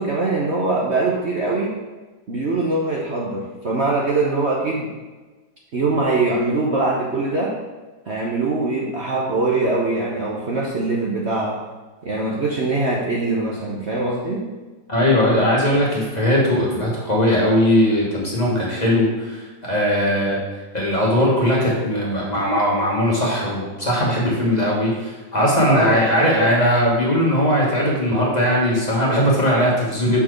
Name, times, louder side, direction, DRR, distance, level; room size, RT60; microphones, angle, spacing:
voice 1, 0.0-1.7 2.3-4.9 5.7-7.5 8.1-11.5 12.0-14.4 25.6-26.3, right 2 dB, 45° right, -3 dB, 1.0 m, -22 dB
voice 2, 14.9-20.4 20.7-30.2, equal, 25° left, -4 dB, 1.5 m, -19 dB
5.8 x 4.6 x 6.2 m, 1.2 s
omnidirectional pair, 1.8 m